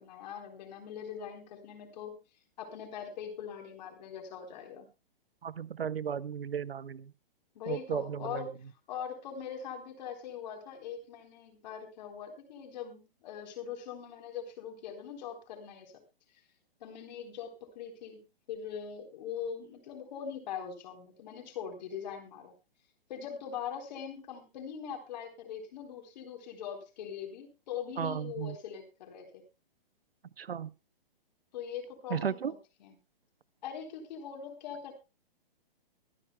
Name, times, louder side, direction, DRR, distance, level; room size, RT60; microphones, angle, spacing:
voice 1, 0.0-2.1 2.6-4.9 7.5-8.5 8.9-15.9 16.8-22.5 23.1-29.4 31.5-32.5 32.8-32.9 33.6-34.9, left 8 dB, 50° left, 5 dB, 4.0 m, -42 dB
voice 2, 5.4-7.1 7.7-8.4 28.0-28.6 30.4-30.7 32.1-32.5, right 7 dB, 80° right, 21 dB, 0.8 m, -35 dB
23.5 x 9.9 x 2.3 m, 0.28 s
figure-of-eight pair, 125°, 29 cm